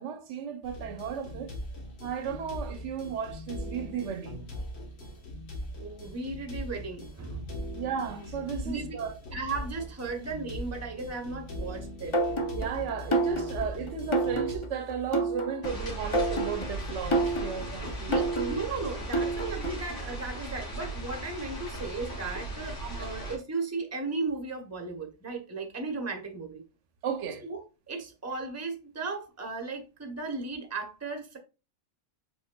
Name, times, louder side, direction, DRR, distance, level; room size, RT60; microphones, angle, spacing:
voice 1, 0.0-1.6 2.0-4.5 7.8-9.2 12.5-18.1 22.8-23.1 27.0-27.4, right 7 dB, 80° right, 1.0 m, -35 dB
sound 1, 0.6-14.6, left 1 dB, 60° left, 1.5 m, -40 dB
voice 2, 5.8-7.7 8.6-9.0 9.3-12.2 18.1-26.6 27.4-27.6 27.9-31.4, right 3 dB, 15° right, 0.7 m, -36 dB
sound 2, 12.1-19.9, right 2 dB, 30° left, 0.7 m, -30 dB
sound 3, 15.6-23.4, right 1 dB, 85° left, 3.0 m, -38 dB
5.0 x 4.8 x 2.2 m
omnidirectional pair, 1.2 m